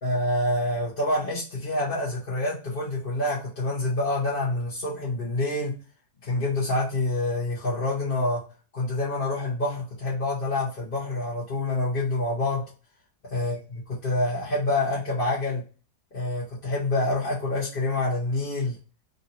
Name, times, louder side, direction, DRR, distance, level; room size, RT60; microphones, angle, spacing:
voice 1, 0.0-5.7 6.2-8.4 8.7-12.6 13.3-15.6 16.1-18.7, left 2 dB, 35° left, -8 dB, 1.2 m, -27 dB
3.9 x 2.8 x 4.2 m, 0.36 s
omnidirectional pair, 1.8 m